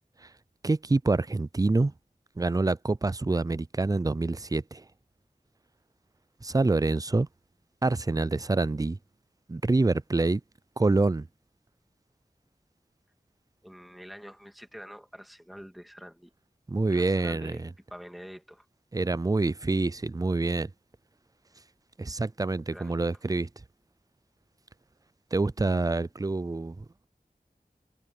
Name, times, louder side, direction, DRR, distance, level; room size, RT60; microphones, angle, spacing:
voice 1, 0.6-1.9 2.4-4.8 6.4-7.3 7.8-9.0 9.5-10.4 10.8-11.3 16.7-17.7 18.9-20.7 22.0-23.5 25.3-26.9, right 3 dB, 20° right, 0.4 m, -26 dB
voice 2, 13.6-16.3 16.9-18.7 22.7-23.2, equal, ahead, 2.0 m, -46 dB
wide cardioid pair, 55°, 16 cm